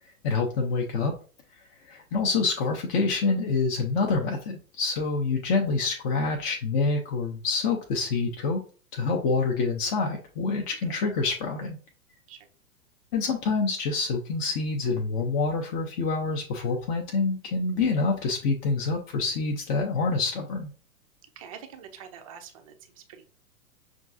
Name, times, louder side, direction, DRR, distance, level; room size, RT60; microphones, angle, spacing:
voice 1, 0.2-1.1 1.9-8.6 8.9-11.8 13.1-20.7, left 4 dB, 30° left, 1 dB, 0.6 m, -26 dB
voice 2, 21.4-23.3, right 8 dB, 25° right, 6 dB, 0.4 m, -46 dB
5.9 x 2.4 x 2.5 m, 0.38 s
figure-of-eight pair, 110°, 45 cm